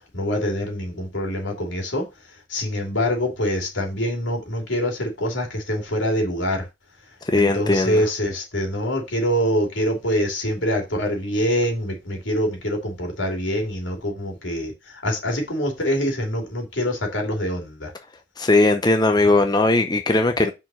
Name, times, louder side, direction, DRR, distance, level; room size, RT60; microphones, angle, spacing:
voice 1, 0.0-2.1 2.5-6.7 7.3-17.9, equal, 85° left, 3.0 m, -25 dB
voice 2, 7.3-8.0 18.4-20.5, left 2 dB, 20° left, 0.7 m, -18 dB
6.0 x 4.7 x 6.3 m
head